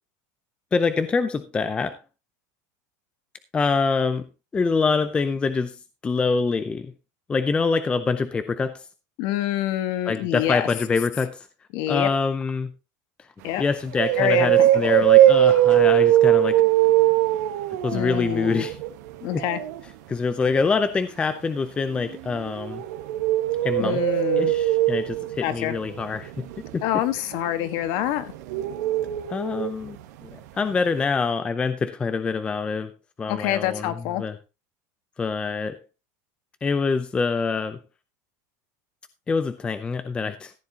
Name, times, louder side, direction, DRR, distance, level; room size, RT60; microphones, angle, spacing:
voice 1, 0.7-2.0 3.5-4.3 4.5-6.9 7.3-8.8 10.1-11.5 11.9-12.7 13.6-16.6 17.8-18.8 19.3-19.4 20.1-22.8 23.6-24.0 24.4-26.5 26.7-26.8 29.3-30.0 30.2-33.9 34.2-34.4 35.2-35.8 36.6-37.8 39.3-40.5, left 4 dB, 10° left, 0.5 m, -25 dB
voice 2, 9.2-10.7 11.7-12.1 13.4-13.6 14.2-15.0 17.9-18.7 19.2-19.6 23.8-24.5 25.4-25.7 26.8-28.3 33.3-34.2, left 12 dB, 50° left, 1.5 m, -26 dB
sound 1, 13.5-13.6 13.9-19.8 22.0-30.0 30.2-30.3 30.7-30.8, right 13 dB, 70° right, 1.5 m, -21 dB
14.5 x 9.8 x 2.9 m
supercardioid pair, 170°, 9 cm